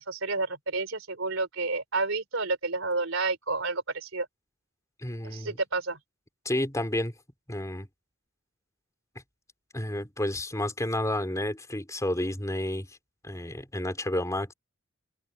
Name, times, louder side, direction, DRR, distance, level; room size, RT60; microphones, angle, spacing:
voice 1, 0.0-4.3 5.2-6.0, right 3 dB, 80° right, 3.7 m, -30 dB
voice 2, 5.0-5.6 6.5-7.1 7.5-7.9 9.7-12.9 13.2-14.5, left 1 dB, 15° left, 3.9 m, -30 dB
open air
head